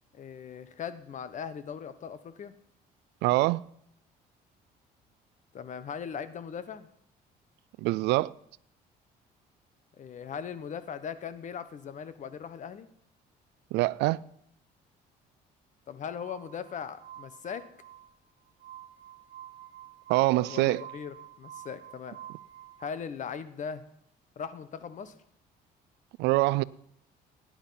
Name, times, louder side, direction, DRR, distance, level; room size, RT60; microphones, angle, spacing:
voice 1, 0.1-2.5 5.5-6.9 10.0-12.9 15.9-17.7 20.5-22.2 22.8-23.8 24.4-25.1, left 7 dB, 45° left, 1.2 m, -39 dB
voice 2, 3.2-3.6 7.8-8.3 13.7-14.2 20.1-20.8 26.2-26.6, right 19 dB, 90° right, 0.5 m, -24 dB
Glass, 16.2-22.9, right 12 dB, 70° right, 1.3 m, -49 dB
17.5 x 10.0 x 5.9 m
cardioid pair, 110°, 17 cm